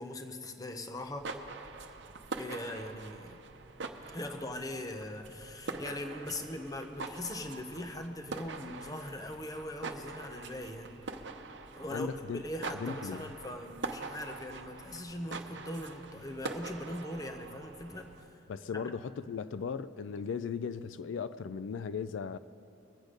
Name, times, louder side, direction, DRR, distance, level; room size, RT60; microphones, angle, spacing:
voice 1, 0.0-1.3 2.4-3.4 4.1-11.1 11.7-12.1 12.3-18.4 18.7-18.9, left 1 dB, 20° left, 0.8 m, -41 dB
sound 1, 1.0-18.3, right 3 dB, 70° right, 0.8 m, -44 dB
voice 2, 11.9-12.4 12.8-13.3 18.5-22.4, left 6 dB, 85° left, 0.4 m, -37 dB
22.5 x 8.2 x 5.1 m
head